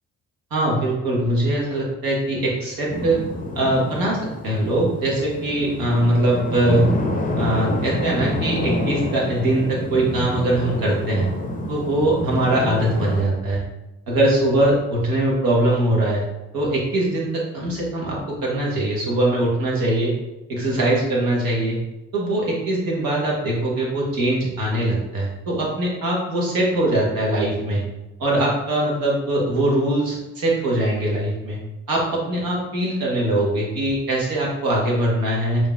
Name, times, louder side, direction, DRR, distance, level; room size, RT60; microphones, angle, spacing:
voice 1, 0.5-3.2 3.5-6.9 7.3-11.3 11.7-13.6 14.1-16.3 16.5-20.1 20.5-21.8 22.1-27.8 28.2-31.6 31.9-35.7, right 1 dB, 65° right, -3 dB, 1.4 m, -22 dB
sound 1, 2.9-13.2, left 1 dB, 20° left, 0.7 m, -28 dB
5.1 x 2.9 x 2.5 m, 0.99 s
hypercardioid pair, 45°, 38 cm